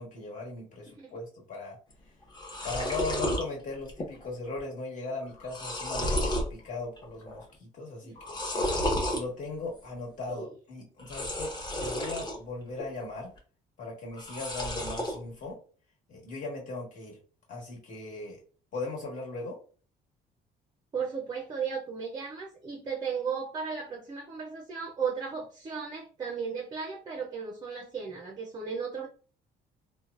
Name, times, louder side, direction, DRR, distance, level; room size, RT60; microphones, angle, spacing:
voice 1, 0.0-1.8 2.6-8.4 9.1-11.5 11.8-13.3 13.8-15.6 16.1-17.2 17.5-18.4 18.7-19.6, left 3 dB, 50° left, -2 dB, 1.4 m, -38 dB
sound 1, 1.9-2.0 2.2-3.4 3.9-4.3 4.6-4.7 5.2-6.5 7.0-7.4 8.2-9.2 11.0-12.4 12.8-13.4 14.1-15.2, left 1 dB, 25° left, 0.8 m, -32 dB
voice 2, 8.5-9.0 10.3-10.5 20.9-29.1, right 6 dB, 25° right, 2 dB, 0.5 m, -35 dB
3.1 x 2.1 x 2.4 m, 0.40 s
cardioid pair, 110°, 17 cm